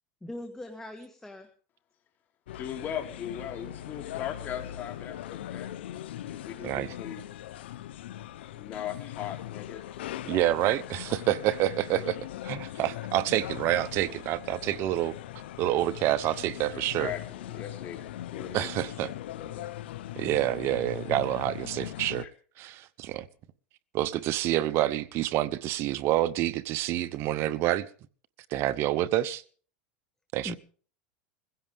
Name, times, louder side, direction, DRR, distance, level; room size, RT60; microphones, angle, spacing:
voice 1, 0.2-1.5 30.4-30.6, left 1 dB, 10° left, 1.7 m, -40 dB
sound 1, 2.5-22.3, left 13 dB, 90° left, 0.8 m, -40 dB
voice 2, 2.5-5.8 6.2-7.2 8.6-9.9 16.7-18.0 18.3-19.1 19.4-19.7 22.2-22.3, left 9 dB, 35° left, 3.4 m, -39 dB
voice 3, 6.6-7.0 10.3-12.2 12.4-15.2 15.6-17.1 18.5-19.1 20.2-22.3 22.6-23.3 23.9-27.9 28.5-29.4 30.3-30.6, right 14 dB, 45° right, 0.9 m, -28 dB
21.5 x 16.0 x 3.6 m
supercardioid pair, 135°, 6 cm